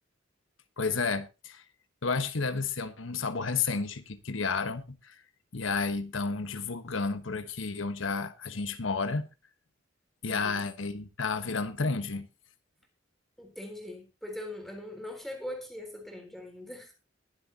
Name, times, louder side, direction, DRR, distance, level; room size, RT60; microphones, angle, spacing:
voice 1, 0.8-1.6 2.0-5.2 5.5-9.3 10.2-12.3, left 4 dB, 85° left, 1.3 m, -31 dB
voice 2, 10.3-10.6 13.4-16.9, left 1 dB, ahead, 3.9 m, -41 dB
21.0 x 7.9 x 2.8 m
head